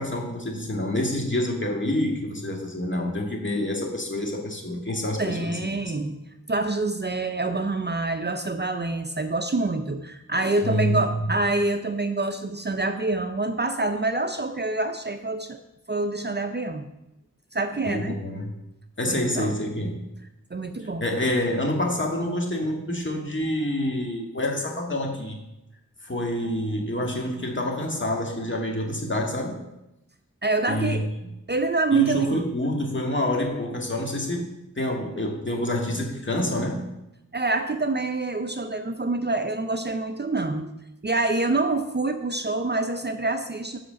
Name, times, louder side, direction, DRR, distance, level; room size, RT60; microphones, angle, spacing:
voice 1, 0.0-5.6 10.6-11.3 17.8-18.5 19.0-20.0 20.8-25.4 26.0-29.6 30.7-31.1 31.9-36.9, left 1 dB, 35° left, 0 dB, 1.9 m, -27 dB
voice 2, 5.2-6.2 6.5-15.6 15.9-16.9 17.5-18.2 19.1-19.5 20.5-21.1 30.4-31.1 31.5-32.4 37.3-40.7 41.0-43.8, right 3 dB, 35° right, 8 dB, 0.6 m, -26 dB
7.8 x 5.7 x 6.2 m, 0.90 s
wide cardioid pair, 55°, 32 cm